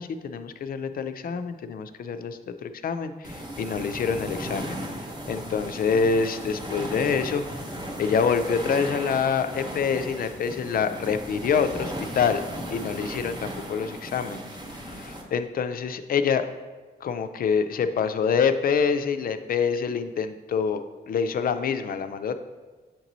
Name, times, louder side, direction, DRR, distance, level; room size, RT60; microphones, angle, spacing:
voice 1, 0.0-4.8 5.3-7.5 8.0-12.4 12.7-14.4 14.7-16.5 17.0-22.4, left 6 dB, 55° left, 10 dB, 0.4 m, -26 dB
sound 1, 3.2-15.2, equal, 25° right, 0.9 m, -36 dB
7.9 x 3.0 x 3.9 m, 1.3 s
cardioid pair, 120°, 18 cm